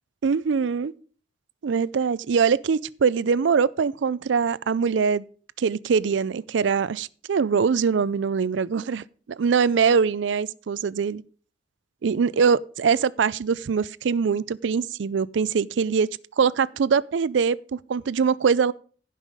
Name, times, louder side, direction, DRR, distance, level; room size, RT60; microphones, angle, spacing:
voice 1, 0.2-0.9 1.6-5.2 5.6-9.0 9.4-11.2 12.0-16.1 16.4-18.7, right 6 dB, 80° right, 0.4 m, -23 dB
16.0 x 5.6 x 4.9 m
head